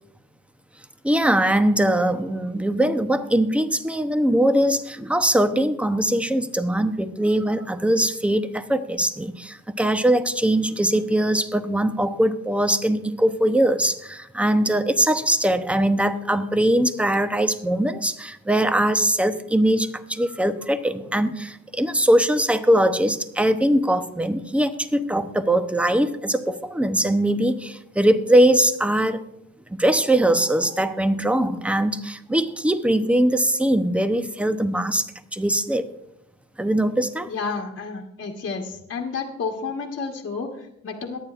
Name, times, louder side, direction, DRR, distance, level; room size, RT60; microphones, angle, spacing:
voice 1, 1.0-29.2 29.7-35.9 36.6-37.3, right 1 dB, 5° right, 10 dB, 0.8 m, -21 dB
voice 2, 37.3-41.2, left 4 dB, 45° left, 0 dB, 1.4 m, -31 dB
21.5 x 9.2 x 2.5 m, 0.81 s
cardioid pair, 90°, 30 cm